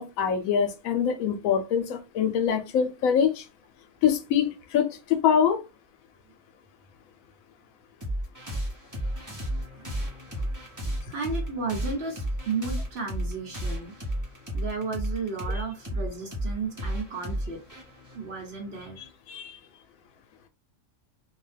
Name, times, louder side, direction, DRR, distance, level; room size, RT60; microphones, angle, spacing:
voice 1, 0.0-3.5 4.0-5.6 19.3-19.6, left 8 dB, 75° left, 1.0 m, -24 dB
sound 1, 8.0-19.1, right 1 dB, 15° right, 0.7 m, -33 dB
voice 2, 11.1-14.0 14.5-17.6 18.1-19.0, right 4 dB, 55° right, 1.0 m, -33 dB
2.7 x 2.2 x 3.2 m
omnidirectional pair, 1.5 m